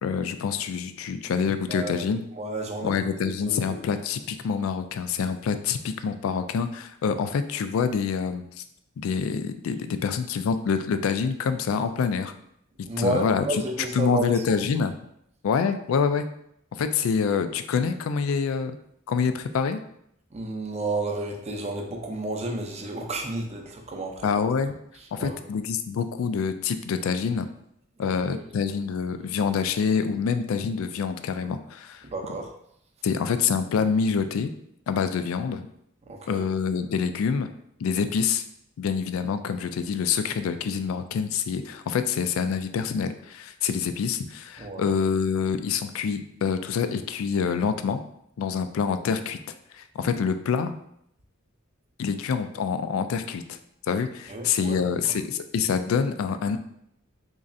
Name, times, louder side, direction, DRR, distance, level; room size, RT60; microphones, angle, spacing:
voice 1, 0.0-2.2 2.8-8.4 9.0-12.3 12.8-13.6 13.9-14.9 15.4-16.3 16.7-18.8 19.1-19.8 24.2-24.7 25.1-27.5 28.0-32.1 33.0-34.5 34.9-35.7 36.3-37.5 37.8-38.4 38.8-48.0 48.4-49.4 49.7-50.7 52.0-53.6 53.9-56.6, left 6 dB, 75° left, 10 dB, 0.3 m, -26 dB
voice 2, 1.7-2.0 2.3-3.8 12.8-14.6 20.3-24.3 24.9-25.4 28.0-28.1 32.0-32.5 36.1-36.5 44.6-44.9 54.3-55.1, right 2 dB, 30° right, 2 dB, 0.5 m, -32 dB
3.8 x 3.1 x 2.6 m, 0.73 s
head